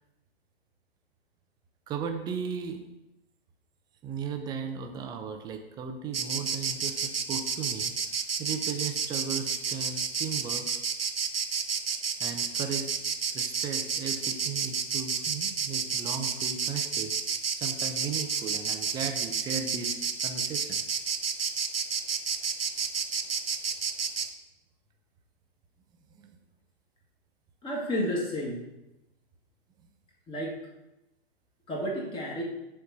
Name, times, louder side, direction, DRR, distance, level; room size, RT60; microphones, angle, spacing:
voice 1, 1.9-2.8 4.0-7.9 8.4-10.7 12.2-12.8 13.3-17.1 17.5-20.0 20.2-20.8 26.1-26.2, right 6 dB, 15° right, 5 dB, 0.6 m, -36 dB
Insect, 6.1-24.3, right 6 dB, 75° right, 0.8 m, -30 dB
voice 2, 27.6-28.7 30.3-30.5 31.7-32.4, equal, 15° left, -2 dB, 1.6 m, -31 dB
6.6 x 4.5 x 6.7 m, 0.95 s
figure-of-eight pair, 110°, 30 cm